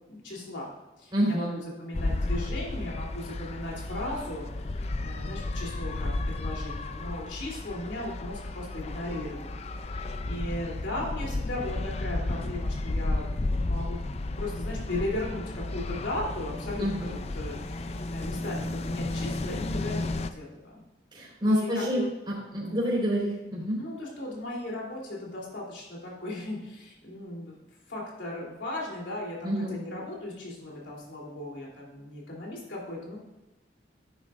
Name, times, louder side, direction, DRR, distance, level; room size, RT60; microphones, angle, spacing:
voice 1, 0.1-14.0 14.4-20.8 21.4-22.1 22.6-22.8 23.8-27.6 27.9-33.2, left 1 dB, 85° left, -3 dB, 3.2 m, -37 dB
voice 2, 1.1-1.6 16.8-17.2 21.1-23.8 29.4-29.7, equal, 25° right, -6 dB, 3.6 m, -28 dB
sound 1, 1.9-20.3, left 2 dB, 35° left, 0.5 m, -33 dB
12.0 x 10.0 x 2.5 m, 1.1 s
head